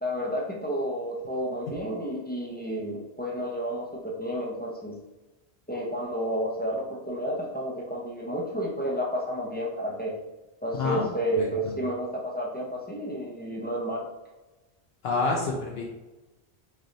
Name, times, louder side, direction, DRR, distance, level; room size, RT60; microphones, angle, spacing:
voice 1, 0.0-5.0 5.7-10.2 10.6-14.1, equal, 15° left, -4 dB, 0.4 m, -31 dB
voice 2, 15.0-15.8, left 3 dB, 75° left, -1 dB, 0.8 m, -27 dB
4.1 x 3.3 x 2.5 m, 1.1 s
omnidirectional pair, 1.1 m